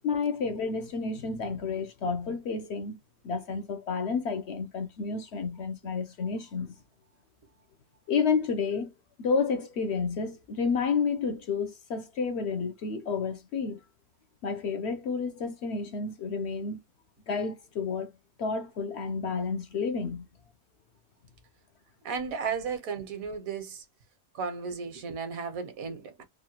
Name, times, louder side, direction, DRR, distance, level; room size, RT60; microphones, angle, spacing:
voice 1, 0.0-3.0 3.2-6.7 8.1-8.9 9.2-13.8 14.4-16.8 17.3-18.1 18.4-20.2, left 5 dB, 60° left, 0.7 m, -30 dB
voice 2, 22.0-23.8 24.3-26.2, right 5 dB, 80° right, 1.4 m, -34 dB
3.6 x 2.2 x 2.8 m
omnidirectional pair, 1.5 m